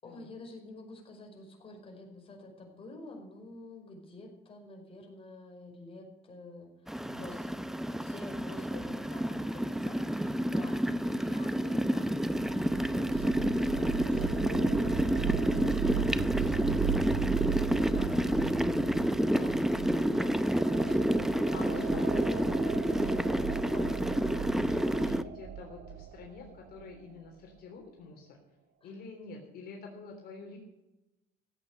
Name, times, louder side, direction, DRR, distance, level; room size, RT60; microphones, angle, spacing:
voice 1, 0.0-6.7 7.1-7.7 8.0-18.1 18.5-18.9 19.2-21.7 23.7-23.9 28.8-28.9, left 2 dB, 35° left, 1 dB, 5.2 m, -49 dB
sound 1, 6.9-25.2, equal, ahead, 0.6 m, -29 dB
voice 2, 8.7-9.6 17.7-18.5 19.9-20.2 21.5-23.8 24.0-28.4 28.8-30.6, left 4 dB, 65° left, 1 dB, 3.4 m, -48 dB
sound 2, 12.1-26.9, right 9 dB, 70° right, 1.1 m, -37 dB
16.0 x 8.6 x 8.0 m, 0.95 s
cardioid pair, 110°, 17 cm